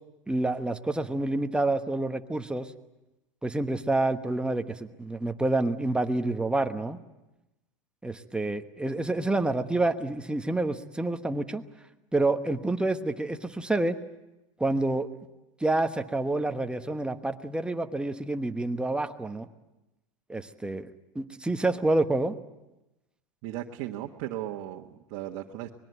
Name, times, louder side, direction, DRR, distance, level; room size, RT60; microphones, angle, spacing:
voice 1, 0.3-2.7 3.4-7.0 8.0-11.6 12.1-14.0 14.6-15.1 15.6-19.5 20.3-22.3, right 2 dB, 5° right, 7 dB, 1.2 m, -28 dB
voice 2, 23.4-25.7, right 13 dB, 55° right, 0 dB, 1.5 m, -36 dB
24.5 x 21.0 x 8.1 m, 0.98 s
supercardioid pair, 120°, 17 cm